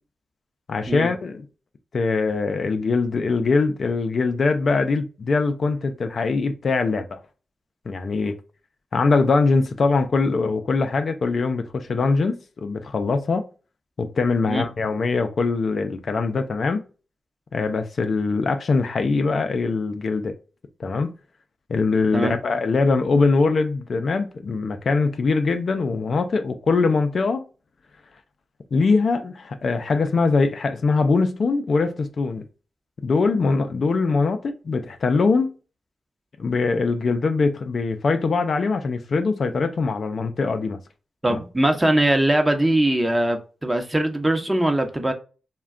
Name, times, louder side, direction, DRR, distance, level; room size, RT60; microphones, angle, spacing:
voice 1, 0.7-1.4 1.9-7.2 7.9-8.3 8.9-13.5 14.0-16.8 17.5-20.3 20.8-21.1 21.7-27.4 28.7-32.4 33.0-35.5 36.4-40.8 41.3-41.4, left 4 dB, 60° left, 0.4 m, -22 dB
voice 2, 41.2-45.1, right 1 dB, 15° right, 0.7 m, -21 dB
2.3 x 2.2 x 3.5 m
supercardioid pair, 45°, 0 cm